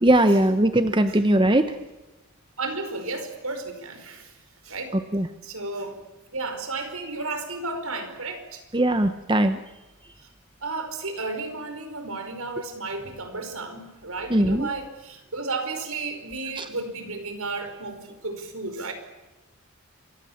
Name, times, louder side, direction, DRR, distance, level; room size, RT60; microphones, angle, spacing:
voice 1, 0.0-1.8 5.1-5.3 8.7-9.6 14.3-14.7 16.6-16.7, right 1 dB, 20° right, 9 dB, 0.9 m, -20 dB
voice 2, 2.6-4.4 4.6-4.9 5.4-6.0 6.3-8.6 10.6-18.9, right 3 dB, 75° right, 7 dB, 5.0 m, -33 dB
27.5 x 24.0 x 7.3 m, 1.1 s
head